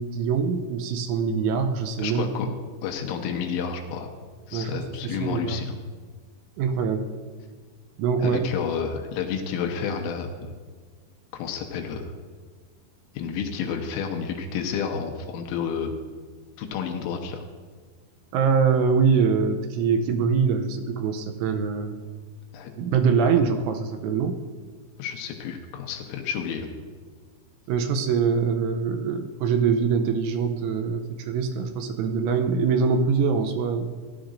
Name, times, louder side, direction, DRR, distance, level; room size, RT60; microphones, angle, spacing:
voice 1, 0.0-2.5 4.5-5.6 6.6-7.1 8.0-8.5 18.3-22.0 22.8-24.4 27.7-33.9, right 5 dB, 80° right, 6 dB, 3.0 m, -24 dB
voice 2, 2.0-2.5 2.8-4.1 4.5-5.7 8.2-10.5 11.3-12.0 13.2-15.9 16.6-17.5 22.5-22.7 25.0-26.7, left 6 dB, 90° left, 3 dB, 3.5 m, -30 dB
16.0 x 11.0 x 2.6 m, 1.5 s
omnidirectional pair, 5.8 m